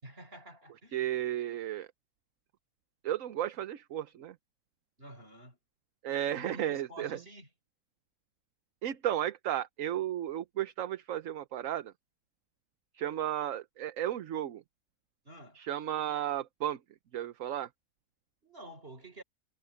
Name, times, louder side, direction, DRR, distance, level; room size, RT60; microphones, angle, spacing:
voice 1, 0.0-1.0 5.0-5.6 6.4-7.5 15.2-15.6 18.4-19.2, right 1 dB, 35° right, 4.5 m, -49 dB
voice 2, 0.9-1.9 3.0-4.3 6.0-7.2 8.8-11.9 12.9-14.6 15.5-16.8 17.1-17.7, right 11 dB, 60° right, 1.1 m, -34 dB
omnidirectional pair, 1.7 m